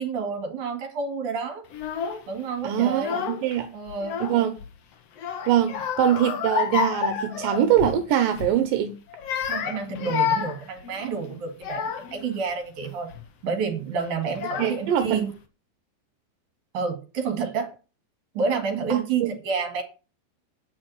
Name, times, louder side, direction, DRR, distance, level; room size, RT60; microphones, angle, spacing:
voice 1, 0.0-1.7 2.3-3.2 3.7-4.2 9.5-13.1 13.4-15.3 16.7-17.7 18.3-19.8, right 5 dB, 65° right, 3.6 m, -29 dB
Child speech kid speaking / Crying sobbing, 1.7-2.3 2.9-3.6 3.9-4.7 5.2-8.0 8.3-8.6 9.1-12.2 12.8-13.2 14.0-14.1 14.3-15.1, left 7 dB, 55° left, 1.9 m, -30 dB
voice 2, 2.6-3.7 4.2-4.5 5.5-9.0 14.6-15.2 18.9-19.3, right 10 dB, 80° right, 2.7 m, -23 dB
9.6 x 6.3 x 7.9 m
omnidirectional pair, 4.0 m